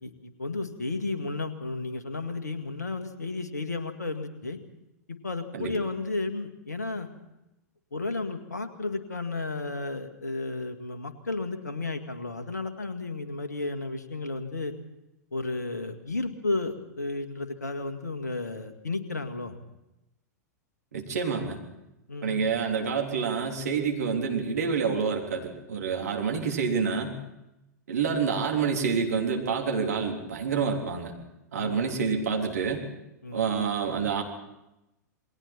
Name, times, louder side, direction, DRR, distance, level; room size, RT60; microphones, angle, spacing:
voice 1, 0.0-4.6 5.1-7.1 7.9-14.7 15.3-19.6 22.1-22.4 31.6-31.9 33.2-33.5, left 3 dB, 70° left, 8 dB, 2.0 m, -33 dB
voice 2, 20.9-21.6 22.2-27.2 27.9-31.1 31.5-32.8 33.3-34.2, right 5 dB, 65° right, 1 dB, 3.5 m, -28 dB
28.5 x 21.0 x 4.4 m, 0.91 s
figure-of-eight pair, 100°, 9 cm